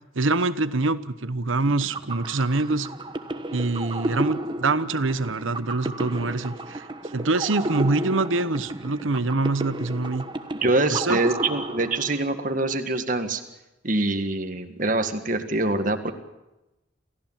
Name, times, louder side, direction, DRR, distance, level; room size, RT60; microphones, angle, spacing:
voice 1, 0.1-2.9 3.5-6.9 7.1-10.3 10.9-11.2, right 3 dB, 85° right, 14 dB, 1.0 m, -25 dB
sound 1, 1.7-12.5, right 1 dB, 25° right, 1.2 m, -33 dB
voice 2, 10.5-13.4 13.8-16.1, right 2 dB, 40° right, 7 dB, 1.8 m, -24 dB
29.0 x 15.5 x 7.4 m, 0.98 s
head